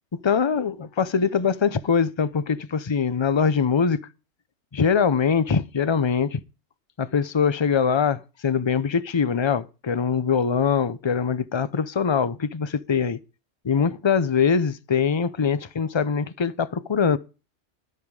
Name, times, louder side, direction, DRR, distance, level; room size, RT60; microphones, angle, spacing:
voice 1, 0.2-4.0 4.7-6.4 7.0-8.2 8.4-13.2 13.6-17.2, left 6 dB, 30° left, 0.6 m, -22 dB
12.5 x 8.6 x 4.8 m
omnidirectional pair, 1.2 m